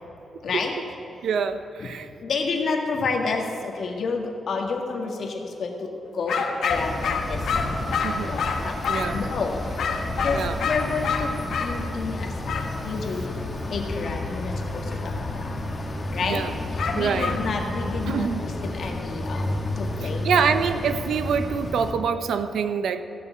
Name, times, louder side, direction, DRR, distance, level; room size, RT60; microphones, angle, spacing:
voice 1, 0.4-0.7 2.2-7.5 8.2-8.8 9.1-9.6 9.9-12.3 12.8-13.4 13.7-15.6 16.1-16.5 16.7-20.3, left 4 dB, 55° left, 1 dB, 1.8 m, -30 dB
voice 2, 1.2-2.1 8.0-8.3 8.9-9.2 10.3-10.6 15.9-16.5 16.9-17.4 18.1-18.4 20.0-23.0, right 6 dB, 80° right, 10 dB, 0.7 m, -26 dB
sound 1, 6.3-9.2 9.8-11.7 12.5-12.7 16.8-17.4, left 5 dB, 80° left, 1.5 m, -27 dB
sound 2, 6.7-21.9, left 2 dB, 20° left, 1.5 m, -31 dB
15.5 x 6.8 x 9.2 m, 2.7 s
wide cardioid pair, 150°, 0 cm